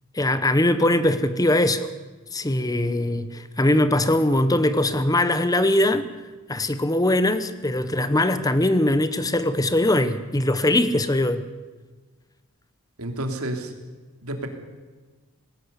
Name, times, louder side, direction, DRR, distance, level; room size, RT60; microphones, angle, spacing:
voice 1, 0.1-1.9 2.3-6.0 6.5-11.4, left 1 dB, 15° left, 12 dB, 0.9 m, -21 dB
voice 2, 13.0-13.7 14.2-14.5, right 1 dB, 85° right, 5 dB, 3.0 m, -30 dB
19.0 x 17.0 x 8.3 m, 1.3 s
head